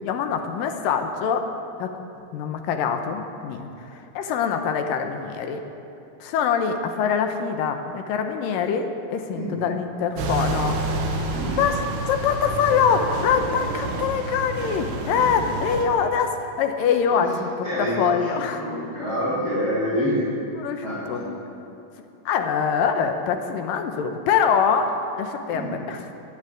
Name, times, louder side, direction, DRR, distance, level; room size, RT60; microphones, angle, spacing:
voice 1, 0.0-1.5 1.8-1.9 2.3-5.6 6.2-10.8 11.6-11.8 12.1-17.5 17.8-18.6 20.6-21.4 22.3-24.9 25.2-26.0, left 7 dB, 70° left, 6 dB, 2.4 m, -24 dB
sound 1, 10.2-15.8, right 2 dB, 85° right, 3.4 m, -29 dB
voice 2, 17.6-20.3 20.8-21.2 25.5-25.8, equal, 35° left, -10 dB, 5.3 m, -27 dB
12.0 x 10.5 x 9.1 m, 2.9 s
omnidirectional pair, 4.5 m